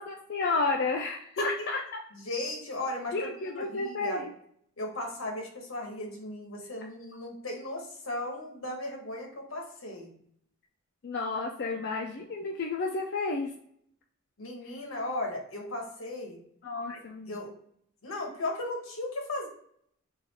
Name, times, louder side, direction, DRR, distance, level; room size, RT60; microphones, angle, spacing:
voice 1, 0.0-1.8 3.1-4.3 11.0-13.5 16.6-17.4, left 3 dB, 55° left, 0 dB, 0.5 m, -31 dB
voice 2, 2.2-4.2 4.8-10.2 14.4-16.4 16.9-17.0 17.3-17.5 18.0-19.5, left 1 dB, 80° left, 1 dB, 1.2 m, -36 dB
4.0 x 2.5 x 4.0 m, 0.66 s
head